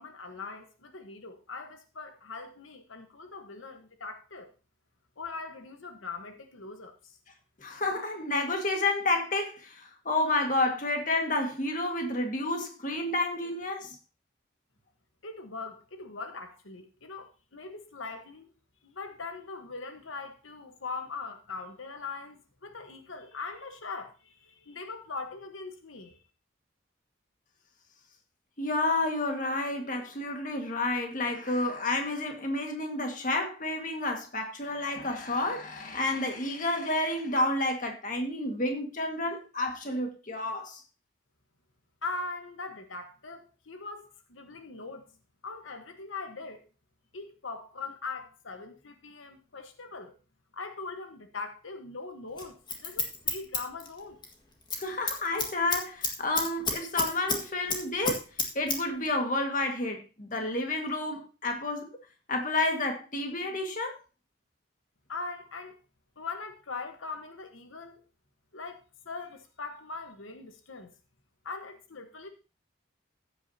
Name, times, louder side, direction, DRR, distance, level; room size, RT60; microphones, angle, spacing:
voice 1, 0.0-4.5 5.2-7.2 15.2-18.5 18.8-26.2 42.0-45.1 45.4-46.6 47.1-50.1 50.5-54.2 65.1-65.8 66.2-68.0 68.5-70.9 71.4-72.3, left 4 dB, 90° left, 1.2 m, -41 dB
voice 2, 7.6-14.0 28.6-40.8 54.8-58.2 58.5-61.9 62.3-64.0, left 2 dB, 40° left, 1.8 m, -30 dB
Scissors, 52.4-54.3 54.6-54.8 55.1-57.4 57.7-58.8 59.1-59.2, left 3 dB, 20° left, 1.8 m, -30 dB
15.0 x 8.5 x 2.8 m
head